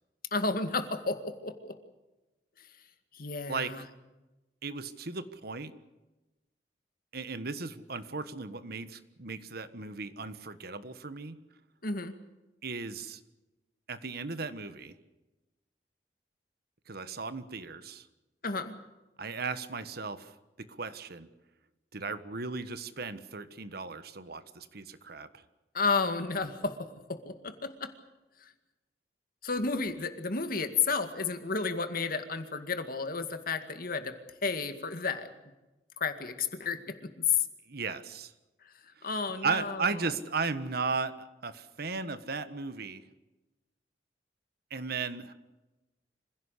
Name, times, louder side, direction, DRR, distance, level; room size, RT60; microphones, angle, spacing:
voice 1, 0.3-1.8 3.1-3.8 11.8-12.2 18.4-18.8 25.7-27.9 28.4-28.5 29.4-34.2 34.4-35.3 36.0-37.4 39.0-39.9, left 4 dB, 55° left, 8 dB, 2.1 m, -32 dB
voice 2, 4.6-5.7 7.1-11.4 12.6-13.2 13.9-14.9 16.9-18.1 19.2-20.3 20.6-21.3 21.9-25.4 37.7-38.3 39.0-39.1 39.4-43.0 44.7-45.3, right 4 dB, 60° right, 12 dB, 1.4 m, -36 dB
26.0 x 16.5 x 8.3 m, 1.1 s
head